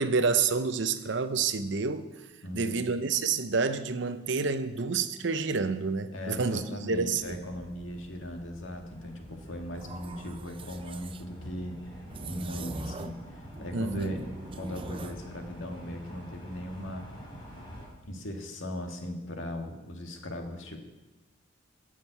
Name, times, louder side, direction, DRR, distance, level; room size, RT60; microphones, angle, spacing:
voice 1, 0.0-2.1 2.5-7.4 13.7-14.1, right 4 dB, 60° right, 11 dB, 0.7 m, -28 dB
voice 2, 2.4-2.9 6.1-11.8 12.2-14.3 14.5-17.1 18.0-20.8, left 1 dB, 75° left, 3 dB, 1.7 m, -38 dB
sound 1, 7.2-17.9, equal, 25° left, 3.4 m, -47 dB
sound 2, 9.7-11.2 12.1-13.2 13.5-15.2, right 3 dB, 25° right, 0.5 m, -42 dB
10.0 x 7.4 x 8.1 m, 1.1 s
head